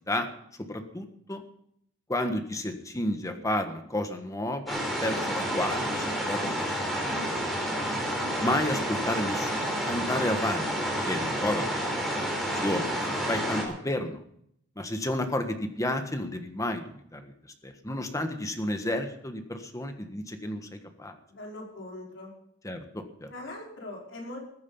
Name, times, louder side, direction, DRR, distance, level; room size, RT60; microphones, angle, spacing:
voice 1, 0.7-1.4 2.1-6.8 8.4-10.7 11.1-11.7 12.2-12.3 12.5-14.2 14.8-17.3 17.6-21.1 22.6-23.3, left 1 dB, 15° left, 6 dB, 1.5 m, -31 dB
sound 1, 4.7-13.6, equal, ahead, 4.1 m, -30 dB
voice 2, 21.3-22.3 23.3-24.4, left 1 dB, 80° left, -2 dB, 4.9 m, -41 dB
15.0 x 9.6 x 7.1 m, 0.71 s
head